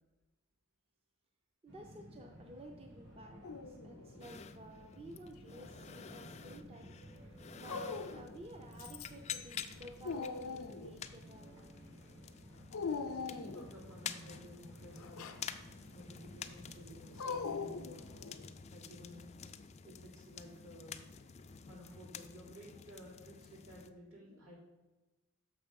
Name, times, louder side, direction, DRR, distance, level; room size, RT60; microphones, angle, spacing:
voice 1, 1.6-6.9 7.3-11.7, right 1 dB, 25° right, 3 dB, 0.6 m, -53 dB
sound 1, 1.7-18.2, equal, 55° right, 1.7 m, -55 dB
Dog, 3.4-4.3 5.4-6.2 7.6-8.4 8.8-9.3 9.7-11.0 12.7-13.8 15.0-15.4 17.2-18.5, left 4 dB, 80° left, 0.6 m, -42 dB
sound 2, 4.2-23.9, left 7 dB, 30° left, 0.3 m, -50 dB
voice 2, 13.3-15.3 15.9-18.0 18.7-19.3 19.8-21.0 21.7-24.6, equal, 80° right, -4 dB, 3.1 m, -54 dB
6.8 x 5.8 x 5.2 m, 1.1 s
head